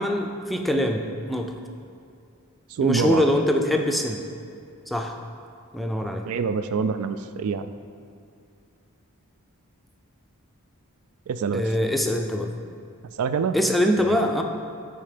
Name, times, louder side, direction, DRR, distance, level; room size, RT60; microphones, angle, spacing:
voice 1, 0.0-1.6 2.8-4.2 4.9-5.2 5.7-6.3 11.5-12.5 13.5-14.4, left 1 dB, ahead, 3 dB, 0.4 m, -23 dB
voice 2, 2.7-3.3 6.3-7.7 11.3-11.7 13.2-13.5 14.0-14.2, right 6 dB, 75° right, 11 dB, 0.4 m, -26 dB
9.0 x 4.3 x 5.0 m, 2.5 s
head